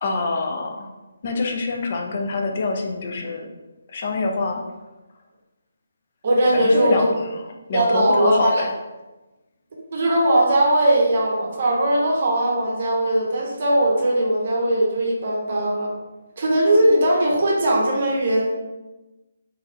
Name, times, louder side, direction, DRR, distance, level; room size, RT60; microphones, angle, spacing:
voice 1, 0.0-0.9 1.2-3.5 3.9-4.6 6.5-8.7, left 3 dB, 45° left, 2 dB, 0.4 m, -25 dB
voice 2, 6.2-7.1 7.7-8.6 9.9-15.9 16.4-18.5, right 1 dB, 50° right, -2 dB, 0.7 m, -19 dB
3.0 x 2.6 x 2.4 m, 1.1 s
hypercardioid pair, 160°, 0 cm